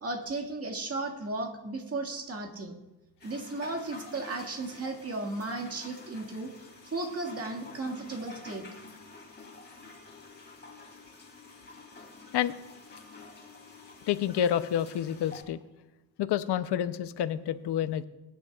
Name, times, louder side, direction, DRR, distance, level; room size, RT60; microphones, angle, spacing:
voice 1, 0.0-2.8 3.2-6.5 6.9-8.6, right 2 dB, 35° right, 2 dB, 1.9 m, -35 dB
sound 1, 3.2-15.4, left 3 dB, 25° left, 2.8 m, -49 dB
voice 2, 14.1-15.6 16.2-18.0, left 10 dB, 85° left, 12 dB, 0.7 m, -28 dB
22.5 x 10.5 x 2.4 m, 1.0 s
cardioid pair, 130°, 39 cm